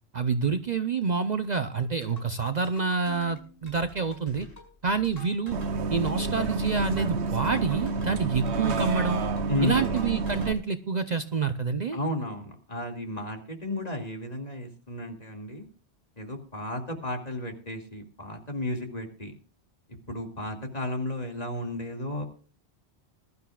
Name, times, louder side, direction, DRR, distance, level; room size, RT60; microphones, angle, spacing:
voice 1, 0.1-4.5 4.8-5.6 5.9-9.2 9.6-12.0, right 5 dB, 45° right, 9 dB, 0.7 m, -27 dB
sound 1, 2.0-10.6, left 4 dB, 65° left, 5.4 m, -48 dB
Bus, 5.5-10.5, right 4 dB, 80° right, 1.2 m, -29 dB
voice 2, 9.5-9.9 11.9-15.7 16.2-19.3 20.1-22.2, left 1 dB, 35° left, 2 dB, 2.5 m, -33 dB
21.5 x 12.5 x 2.4 m, 0.38 s
omnidirectional pair, 1.1 m